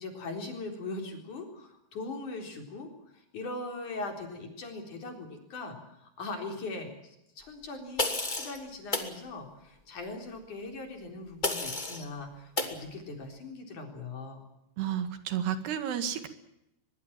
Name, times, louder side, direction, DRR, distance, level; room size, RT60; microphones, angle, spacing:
voice 1, 0.0-14.5, left 3 dB, 50° left, 4 dB, 5.2 m, -40 dB
sound 1, 8.0-8.6 8.9-9.1 11.4-12.0 12.6-12.8, left 2 dB, 15° left, 2.0 m, -31 dB
voice 2, 14.8-16.3, right 9 dB, 75° right, 10 dB, 4.0 m, -31 dB
23.0 x 22.5 x 7.5 m, 0.83 s
omnidirectional pair, 4.8 m